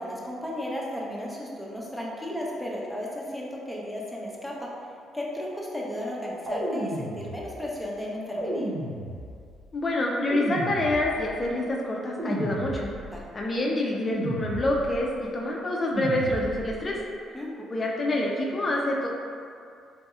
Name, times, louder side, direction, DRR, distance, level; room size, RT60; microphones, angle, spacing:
voice 1, 0.0-4.7 5.1-8.7 13.1-13.2 17.3-17.7, left 1 dB, 5° left, -4 dB, 0.8 m, -34 dB
sound 1, 6.5-7.7 8.4-9.5 10.3-11.4 12.2-13.2 14.1-15.0 15.9-16.8, right 1 dB, 60° right, 0.7 m, -33 dB
voice 2, 9.7-12.9 13.3-17.0 17.7-19.1, left 1 dB, 40° left, -2 dB, 0.4 m, -27 dB
4.0 x 2.6 x 2.4 m, 2.3 s
supercardioid pair, 60°, 0 cm